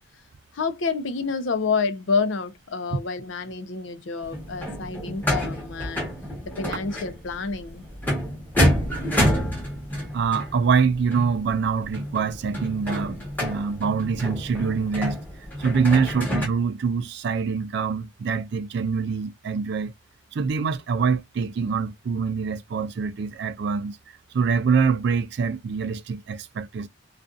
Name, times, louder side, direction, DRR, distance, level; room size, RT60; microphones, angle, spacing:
voice 1, 0.5-6.1 6.5-7.8, left 4 dB, 75° left, 0.5 m, -28 dB
sound 1, 4.2-16.5, equal, 10° left, 1.0 m, -28 dB
voice 2, 10.1-15.2 15.6-19.9 20.3-24.0 24.3-26.9, right 5 dB, 60° right, 0.3 m, -25 dB
2.5 x 2.4 x 2.3 m
head